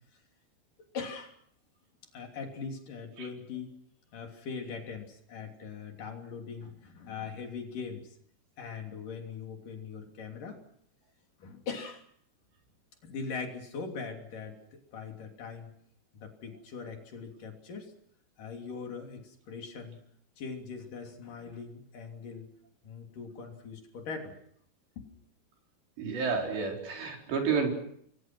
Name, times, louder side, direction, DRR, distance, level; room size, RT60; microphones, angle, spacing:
voice 1, 0.9-1.3 2.1-3.7 4.1-8.1 8.6-10.6 11.4-12.0 13.0-15.7 16.2-17.9 18.4-20.0 20.4-22.5 22.8-24.4 25.0-25.1, left 5 dB, 50° left, 3 dB, 4.4 m, -41 dB
voice 2, 26.0-27.7, right 5 dB, 75° right, 1 dB, 6.8 m, -30 dB
29.0 x 23.5 x 6.1 m, 0.67 s
omnidirectional pair, 5.0 m